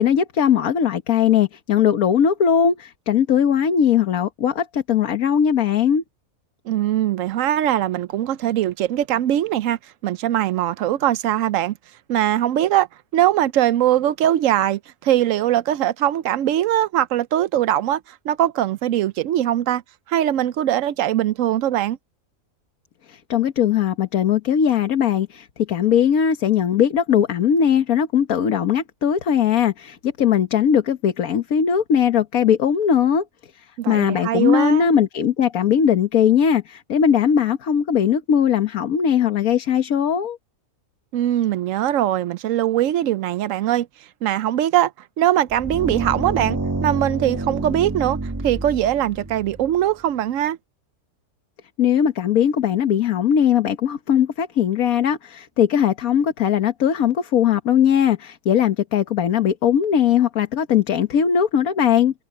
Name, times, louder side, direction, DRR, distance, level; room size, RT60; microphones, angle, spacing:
voice 1, 0.0-6.0 23.1-33.2 33.6-40.4 51.8-62.2, left 8 dB, 80° left, 1.6 m, -19 dB
voice 2, 6.7-11.8 12.1-12.9 13.1-19.8 20.1-22.0 33.8-34.9 41.1-43.9 44.2-44.9 45.2-50.6, right 12 dB, 70° right, 0.9 m, -21 dB
sound 1, 45.5-49.9, right 2 dB, 15° right, 0.9 m, -28 dB
omnidirectional pair, 1.5 m